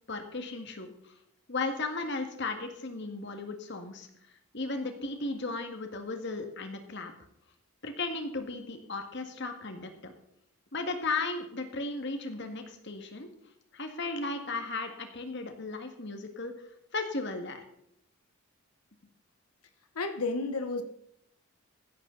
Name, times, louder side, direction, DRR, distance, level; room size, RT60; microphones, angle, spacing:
voice 1, 0.1-1.1 1.5-4.1 4.5-7.1 7.8-10.1 10.7-13.3 13.7-16.5 16.9-17.6, left 3 dB, 50° left, 5 dB, 1.9 m, -35 dB
voice 2, 19.9-20.8, left 3 dB, 85° left, 8 dB, 1.1 m, -31 dB
15.5 x 12.0 x 4.0 m, 0.73 s
head